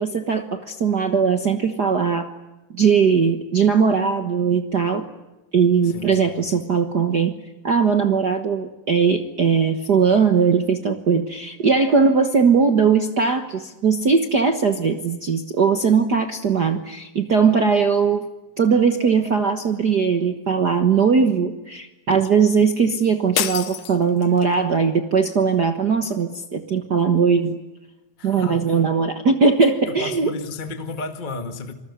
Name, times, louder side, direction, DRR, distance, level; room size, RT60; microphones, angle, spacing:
voice 1, 0.0-2.3 2.7-5.0 5.5-7.3 7.6-18.3 18.6-27.6 28.2-30.3, right 5 dB, 70° right, 7 dB, 0.9 m, -19 dB
voice 2, 5.8-6.3 28.2-28.8 29.9-31.7, left 3 dB, 25° left, 7 dB, 0.9 m, -33 dB
sound 1, 23.4-24.6, left 11 dB, 75° left, 2.9 m, -27 dB
27.0 x 20.5 x 9.5 m, 1.0 s
omnidirectional pair, 4.0 m